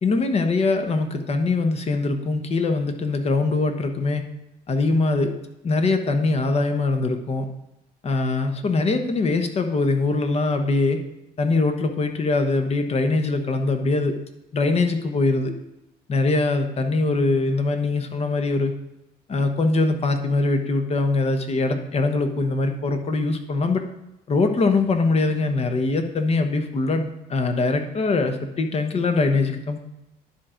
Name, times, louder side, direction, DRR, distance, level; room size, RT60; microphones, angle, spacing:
voice 1, 0.0-4.2 4.7-5.3 5.6-7.4 8.0-11.0 11.4-14.2 14.5-15.6 16.1-18.7 19.3-23.8 24.3-29.8, left 3 dB, 40° left, 6 dB, 1.1 m, -22 dB
10.5 x 4.5 x 5.1 m, 0.92 s
cardioid pair, 110°, 17 cm